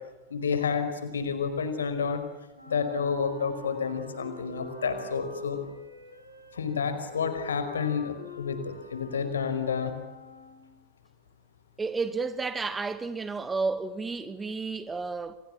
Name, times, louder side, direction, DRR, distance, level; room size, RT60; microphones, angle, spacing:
voice 1, 0.3-2.2 2.7-5.6 6.5-9.9, left 6 dB, 70° left, 5.2 m, -30 dB
Wind instrument woodwind instrument, 2.5-10.8, left 2 dB, 90° right, 6.6 m, -45 dB
voice 2, 11.8-15.4, right 4 dB, 15° right, 1.8 m, -31 dB
30.0 x 25.5 x 7.5 m
figure-of-eight pair, 90°, 0 cm